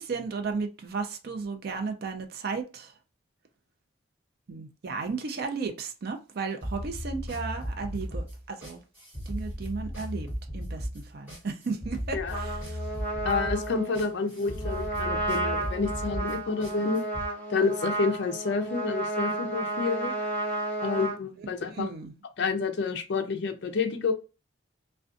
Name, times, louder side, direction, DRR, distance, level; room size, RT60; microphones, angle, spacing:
voice 1, 0.0-2.9 4.5-8.8 9.3-10.3 10.5-12.8 21.4-21.5 21.8-22.1, right 4 dB, 45° right, 0.4 m, -34 dB
sound 1, 6.6-17.3, equal, 10° right, 1.2 m, -36 dB
Trumpet, 12.3-21.2, right 2 dB, 10° left, 0.7 m, -32 dB
voice 2, 13.2-17.0 17.5-20.1 20.8-21.9 22.4-24.1, left 4 dB, 55° left, 0.4 m, -29 dB
2.5 x 2.2 x 2.4 m
head